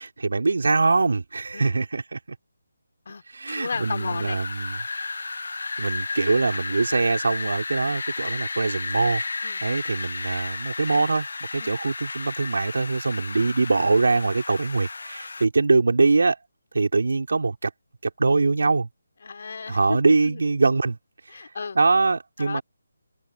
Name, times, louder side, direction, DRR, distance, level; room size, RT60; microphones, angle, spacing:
voice 1, 0.0-2.2 3.3-4.8 5.8-9.2 9.6-11.3 11.5-16.4 16.7-17.7 18.0-18.9 19.7-21.0 21.8-22.6, right 3 dB, 75° right, 5.7 m, -23 dB
Wind, 3.5-15.4, left 3 dB, 75° left, 1.9 m, -33 dB
voice 2, 3.5-4.4 9.4-9.6 11.6-11.8 19.2-20.4 21.3-21.8 22.4-22.6, left 5 dB, 55° left, 4.6 m, -34 dB
open air
figure-of-eight pair, 165°, 0 cm